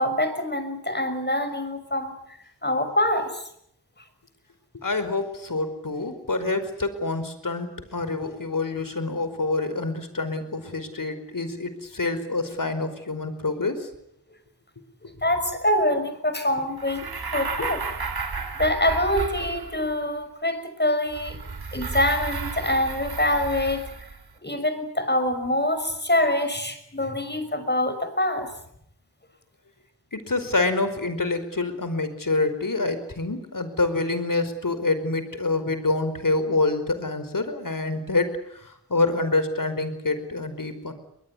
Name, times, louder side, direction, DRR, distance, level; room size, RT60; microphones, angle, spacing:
voice 1, 0.0-2.1 2.6-3.4 15.2-17.0 17.3-17.8 18.6-21.4 21.7-23.9 24.4-28.5, left 1 dB, 25° left, 9 dB, 6.0 m, -25 dB
voice 2, 4.7-13.9 30.1-40.9, left 3 dB, 50° left, 11 dB, 5.0 m, -26 dB
sound 1, 16.8-20.0 21.1-24.3, right 4 dB, 65° right, 3.6 m, -33 dB
22.0 x 21.5 x 9.9 m, 0.74 s
wide cardioid pair, 50°, 40 cm